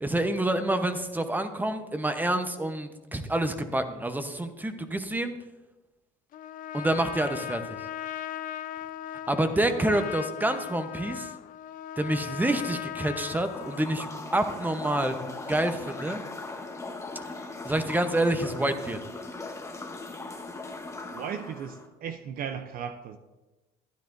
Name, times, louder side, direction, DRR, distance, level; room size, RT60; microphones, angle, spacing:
voice 1, 0.0-5.3 6.7-7.8 9.3-11.3 12.0-14.1 14.3-15.2 15.5-16.2 17.6-19.0, right 1 dB, 10° right, 8 dB, 0.8 m, -27 dB
Trumpet, 6.3-14.0, left 11 dB, 50° left, 0.4 m, -38 dB
sound 1, 13.2-21.9, left 3 dB, 15° left, 1.0 m, -39 dB
voice 2, 21.1-23.2, right 7 dB, 50° right, 8 dB, 0.6 m, -36 dB
12.5 x 10.0 x 2.6 m, 1.1 s
supercardioid pair, 100°, 18 cm